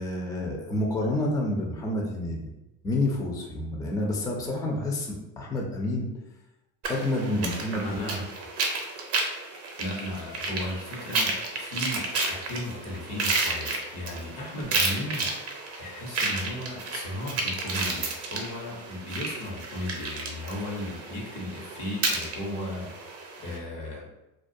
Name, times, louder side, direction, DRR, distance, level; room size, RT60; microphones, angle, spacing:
voice 1, 0.0-2.5 2.8-6.1 6.9-8.2, left 1 dB, 10° left, 0 dB, 0.4 m, -29 dB
sound 1, 6.8-23.6, right 3 dB, 45° right, 0.6 m, -32 dB
voice 2, 7.4-8.3 9.8-15.5 15.8-24.1, left 1 dB, 80° left, -2 dB, 1.0 m, -36 dB
2.3 x 2.1 x 2.6 m, 0.94 s
cardioid pair, 105°, 36 cm